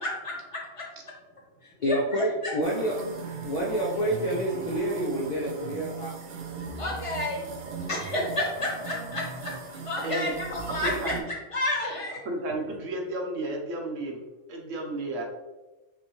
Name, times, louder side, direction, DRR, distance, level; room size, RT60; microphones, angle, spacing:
voice 1, 0.0-0.8 1.9-2.0 2.4-2.5 6.8-7.4 7.9-11.1 11.5-12.2, left 1 dB, 25° left, -3 dB, 1.1 m, -31 dB
voice 2, 1.8-3.0 3.4-6.2, right 1 dB, 45° left, -3 dB, 0.6 m, -28 dB
sound 1, 2.6-11.2, right 5 dB, 55° right, 0.6 m, -39 dB
voice 3, 10.0-10.3 10.6-11.2 12.2-15.2, right 1 dB, 85° right, 0 dB, 1.3 m, -33 dB
5.8 x 2.5 x 3.0 m, 1.1 s
omnidirectional pair, 1.3 m